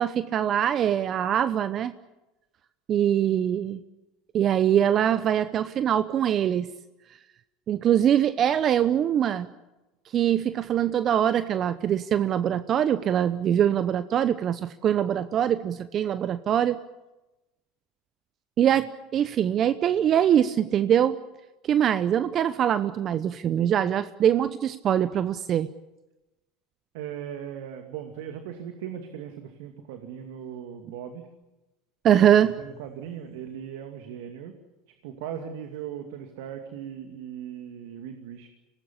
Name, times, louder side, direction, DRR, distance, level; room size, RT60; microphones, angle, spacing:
voice 1, 0.0-1.9 2.9-3.8 4.3-6.7 7.7-9.5 10.1-16.8 18.6-21.2 21.6-25.7 32.0-32.5, right 10 dB, 45° right, 13 dB, 0.9 m, -23 dB
voice 2, 26.9-31.3 32.6-34.6 35.0-38.5, right 9 dB, 70° right, 6 dB, 2.4 m, -38 dB
24.5 x 19.0 x 10.0 m, 1.0 s
hypercardioid pair, 90°, 0 cm